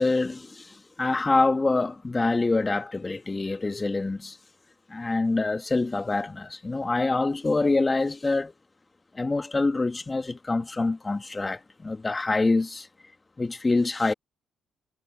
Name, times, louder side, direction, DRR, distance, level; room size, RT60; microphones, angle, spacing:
voice 1, 0.0-4.4 4.9-8.5 9.1-12.9 13.4-14.1, left 3 dB, 20° left, 1.8 m, -25 dB
cardioid pair, 90°, 0 cm